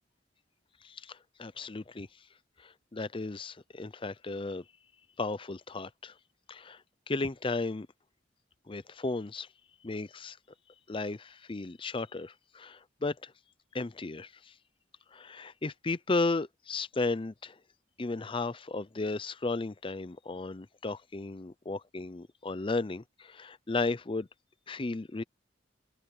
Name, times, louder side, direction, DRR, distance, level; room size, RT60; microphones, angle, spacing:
voice 1, 0.8-2.1 2.6-4.6 5.2-6.2 6.5-7.9 8.7-9.5 9.8-10.4 10.9-13.3 13.7-14.5 15.1-17.6 18.0-24.3 24.7-25.2, left 3 dB, 30° left, 0.6 m, -34 dB
head